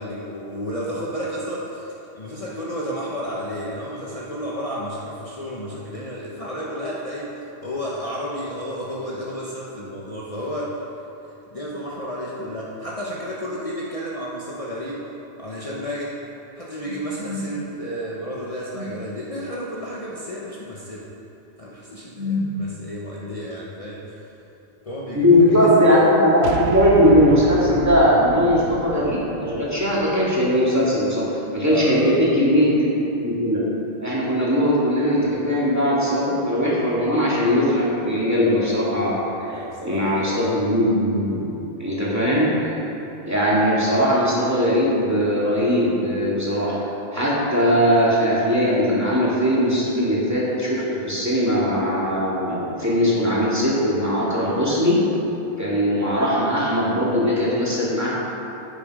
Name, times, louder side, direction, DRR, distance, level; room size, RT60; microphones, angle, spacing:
voice 1, 0.0-10.8 11.5-15.0 15.4-16.2 16.6-21.0 21.6-24.0 24.8-26.0 31.6-32.2 39.5-40.3, equal, 35° left, -6 dB, 1.2 m, -32 dB
voice 2, 25.1-31.3 31.5-32.9 33.2-33.6 34.0-39.1 39.4-41.4 41.8-42.8 43.2-46.7 47.1-55.0 55.6-58.1, equal, 15° right, -7 dB, 2.5 m, -19 dB
sound 1, 26.4-30.9, right 7 dB, 75° right, 0.8 m, -32 dB
10.5 x 9.2 x 5.0 m, 2.9 s
omnidirectional pair, 1.1 m